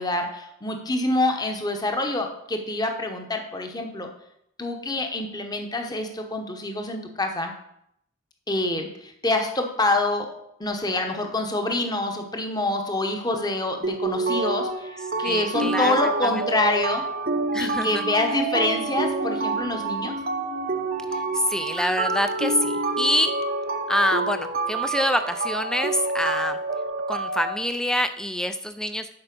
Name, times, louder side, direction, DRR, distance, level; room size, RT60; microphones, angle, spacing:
voice 1, 0.0-4.1 4.6-7.5 8.5-10.3 10.6-17.0 17.6-20.1, left 2 dB, 20° left, 4 dB, 1.0 m, -26 dB
sound 1, 13.8-27.6, right 3 dB, 40° right, 0.8 m, -28 dB
voice 2, 15.2-16.0 16.2-16.3 17.5-18.0 21.1-23.3 23.9-26.6 27.1-29.1, left 1 dB, 5° left, 10 dB, 0.4 m, -26 dB
8.8 x 5.6 x 6.0 m, 0.76 s
head